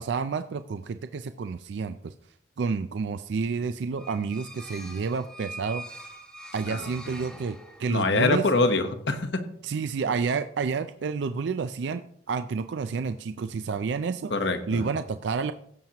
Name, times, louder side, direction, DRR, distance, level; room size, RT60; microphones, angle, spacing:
voice 1, 0.0-2.1 2.6-6.1 6.5-8.4 9.6-14.3 14.7-15.5, right 5 dB, 75° right, 10 dB, 0.4 m, -30 dB
sound 1, 4.0-8.1, right 1 dB, 5° left, 1.1 m, -43 dB
voice 2, 7.9-9.4 14.3-14.9, left 3 dB, 80° left, 8 dB, 1.0 m, -24 dB
16.5 x 7.3 x 2.9 m, 0.69 s
head